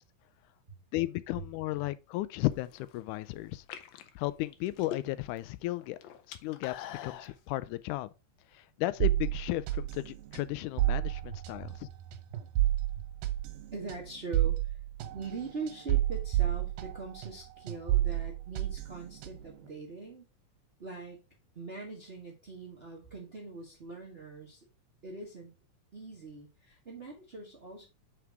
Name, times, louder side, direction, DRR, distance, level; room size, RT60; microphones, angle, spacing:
voice 1, 0.9-3.6 4.2-6.0 6.3-8.1 8.8-11.9, left 17 dB, 90° left, 2.1 m, -34 dB
sound 1, 2.5-3.0 3.5-5.4 5.7-7.3, left 11 dB, 70° left, 1.8 m, -44 dB
sound 2, 9.0-17.4 17.7-19.6, right 14 dB, 85° right, 2.3 m, -31 dB
voice 2, 11.3-11.7 12.3-12.4 12.9-13.0 13.7-14.8 15.1-20.2 20.8-21.2 21.5-24.6 25.0-25.5 25.9-27.9, right 3 dB, 65° right, 0.6 m, -42 dB
5.9 x 4.8 x 4.6 m
omnidirectional pair, 3.5 m